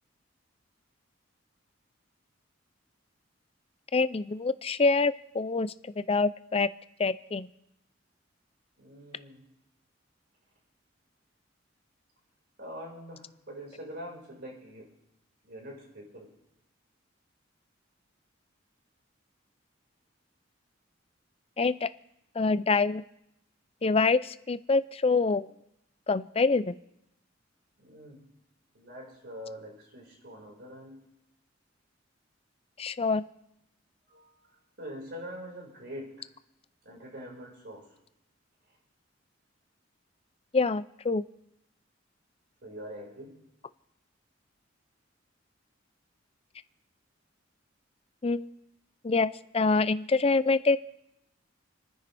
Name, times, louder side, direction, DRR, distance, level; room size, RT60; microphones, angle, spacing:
voice 1, 3.9-6.7 7.0-7.5 21.6-21.9 22.4-23.0 23.8-25.5 26.1-26.8 32.8-33.2 40.5-41.2 48.2-48.5 49.0-50.8, left 3 dB, 30° left, 14 dB, 0.5 m, -26 dB
voice 2, 8.8-9.4 12.6-14.9 15.4-16.3 27.8-28.2 28.7-31.0 34.1-34.4 34.8-36.3 36.8-38.0 42.6-43.4, equal, 60° right, -2 dB, 5.0 m, -44 dB
29.0 x 10.0 x 3.4 m, 0.82 s
head